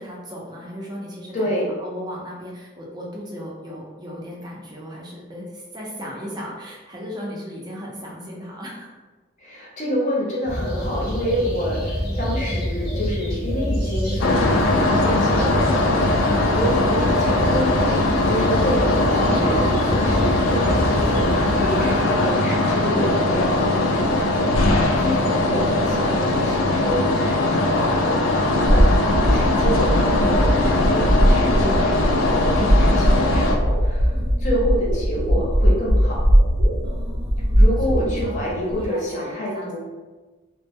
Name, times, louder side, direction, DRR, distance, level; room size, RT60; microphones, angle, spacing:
voice 1, 0.0-8.9 16.6-16.9 34.1-34.4 36.8-39.8, equal, 20° right, -4 dB, 0.4 m, -36 dB
voice 2, 1.3-1.7 9.4-16.3 16.5-29.0 29.3-34.2 34.4-36.3 37.6-39.8, equal, 35° left, -4 dB, 0.6 m, -28 dB
sound 1, 10.5-22.0, equal, 5° left, 0.9 m, -27 dB
sound 2, 14.2-33.5, left 2 dB, 70° left, 0.3 m, -20 dB
sound 3, 28.7-38.8, equal, 90° right, 0.6 m, -19 dB
2.0 x 2.0 x 3.4 m, 1.3 s
head